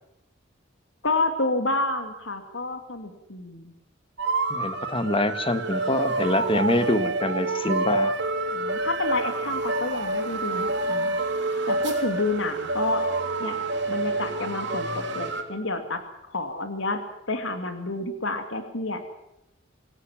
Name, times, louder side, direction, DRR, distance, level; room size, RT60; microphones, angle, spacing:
voice 1, 1.0-3.7 8.5-11.2 11.7-13.0 13.4-13.6 13.9-16.0 16.3-17.0 17.3-19.0, left 2 dB, 65° left, 7 dB, 2.5 m, -29 dB
sound 1, 4.2-15.4, right 2 dB, 55° right, 3.7 m, -28 dB
voice 2, 4.5-8.2, left 1 dB, 25° left, 10 dB, 1.6 m, -25 dB
26.0 x 17.0 x 7.5 m, 0.86 s
head